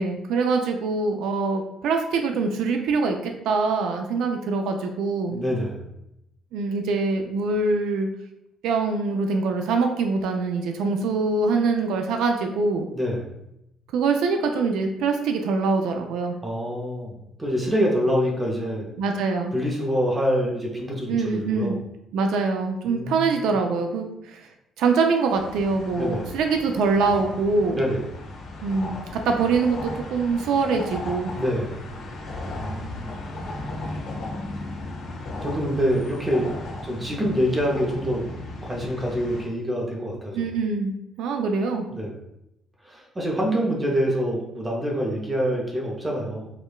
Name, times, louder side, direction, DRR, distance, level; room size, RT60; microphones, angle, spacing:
voice 1, 0.0-5.4 6.5-8.1 8.6-12.9 13.9-16.4 19.0-19.5 21.1-21.7 22.1-24.5 24.8-27.8 28.6-31.3 40.3-40.9 41.2-41.9, right 4 dB, 85° right, 4 dB, 0.3 m, -24 dB
voice 2, 5.3-5.9 12.9-13.3 16.4-18.9 19.5-21.8 22.9-23.4 25.9-26.3 27.7-28.1 31.4-31.9 32.5-33.2 35.4-36.5 36.8-38.2 38.6-40.5 41.9-42.2 42.8-46.5, equal, 15° right, -2 dB, 0.5 m, -26 dB
sound 1, 25.3-39.5, left 2 dB, 70° left, 1.3 m, -36 dB
4.8 x 2.2 x 2.3 m, 0.83 s
cardioid pair, 155°, 0 cm